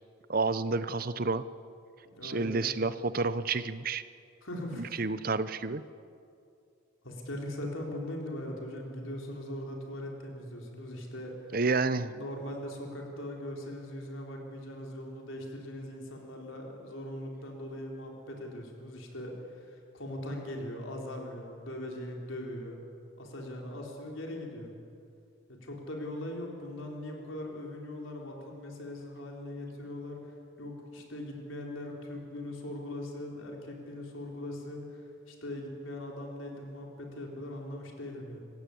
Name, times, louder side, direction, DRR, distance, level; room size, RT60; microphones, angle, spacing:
voice 1, 0.3-1.4 2.2-4.0 4.8-5.8 11.5-12.1, right 3 dB, 45° right, 14 dB, 0.8 m, -30 dB
voice 2, 2.1-2.6 4.4-4.9 7.0-11.4 11.9-22.8 23.2-24.7 25.5-30.2 30.6-35.0 35.3-38.4, left 1 dB, 85° left, 0 dB, 4.3 m, -40 dB
28.5 x 15.5 x 8.6 m, 2.4 s
head